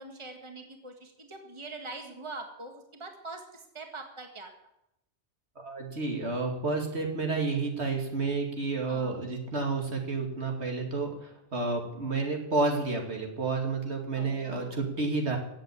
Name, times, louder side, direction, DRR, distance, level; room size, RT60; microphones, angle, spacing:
voice 1, 0.0-4.5 8.9-9.2 14.1-14.8, right 3 dB, 25° right, 4 dB, 1.8 m, -43 dB
voice 2, 5.6-15.4, right 3 dB, 75° right, 2 dB, 2.7 m, -30 dB
15.5 x 7.9 x 8.8 m, 0.82 s
omnidirectional pair, 1.1 m